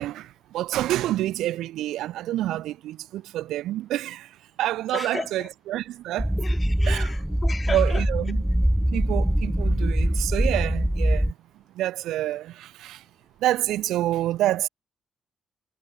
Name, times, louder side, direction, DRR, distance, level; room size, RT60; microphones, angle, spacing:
voice 1, 0.0-6.3 6.8-7.1 7.7-8.4 8.9-11.3 11.7-13.0 13.4-14.7, right 14 dB, 85° right, 3.2 m, -28 dB
voice 2, 4.9-5.5 6.4-8.0, left 4 dB, 30° left, 4.3 m, -35 dB
sound 1, 6.2-11.3, equal, 5° right, 1.9 m, -23 dB
cardioid pair, 90°, 0 cm